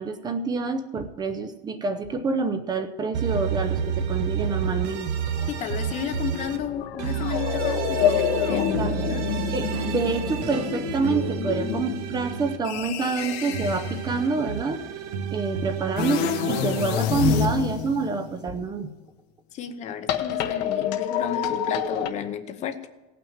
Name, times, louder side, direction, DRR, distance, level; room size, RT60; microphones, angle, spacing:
voice 1, 0.0-5.1 8.5-9.0 9.3-14.8 15.3-18.9, right 4 dB, 20° right, 7 dB, 0.7 m, -27 dB
sound 1, 3.1-6.6 7.0-12.6 13.0-16.9, right 7 dB, 90° right, 1.3 m, -30 dB
sound 2, 3.8-4.1 4.5-14.1 16.0-18.7 20.1-22.1, left 8 dB, 60° left, 1.0 m, -28 dB
voice 2, 5.5-8.7 9.1-9.2 19.5-22.9, left 9 dB, 35° left, 9 dB, 0.8 m, -32 dB
16.5 x 6.0 x 7.3 m, 1.2 s
cardioid pair, 160°, 20 cm